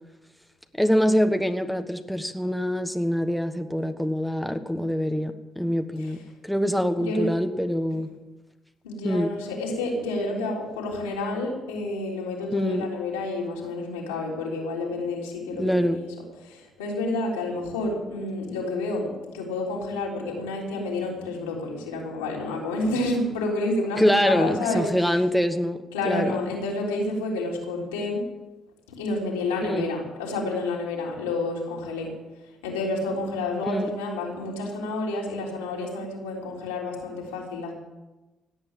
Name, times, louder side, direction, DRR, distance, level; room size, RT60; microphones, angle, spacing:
voice 1, 0.8-8.1 9.0-9.3 12.5-12.9 15.6-16.0 24.0-26.4 29.6-29.9 33.7-33.9, equal, ahead, 7 dB, 1.4 m, -25 dB
voice 2, 7.0-7.3 8.8-16.1 16.4-24.9 25.9-28.2 28.9-32.1 32.6-37.7, left 2 dB, 85° left, -2 dB, 3.6 m, -29 dB
17.0 x 8.9 x 7.6 m, 1.1 s
hypercardioid pair, 50°, 0 cm